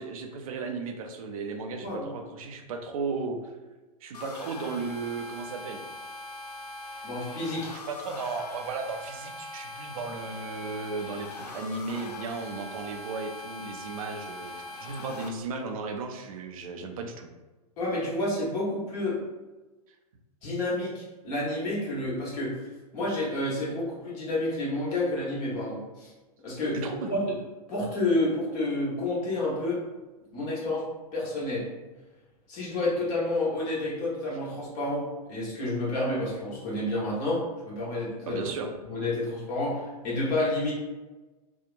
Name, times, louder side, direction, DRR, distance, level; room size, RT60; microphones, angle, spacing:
voice 1, 0.0-3.5 4.0-5.8 7.9-17.3 26.7-27.1 38.3-38.7, right 4 dB, 60° right, 4 dB, 0.4 m, -35 dB
sound 1, 4.1-15.3, left 2 dB, 75° left, 0.4 m, -41 dB
voice 2, 7.0-7.7 17.8-19.2 20.4-22.6 22.9-26.1 26.4-26.8 27.1-27.3 27.7-29.8 30.3-30.9 31.1-31.7 32.5-38.5 38.8-40.7, left 2 dB, 40° left, -6 dB, 1.2 m, -29 dB
2.8 x 2.1 x 2.5 m, 1.2 s
figure-of-eight pair, 100°, 20 cm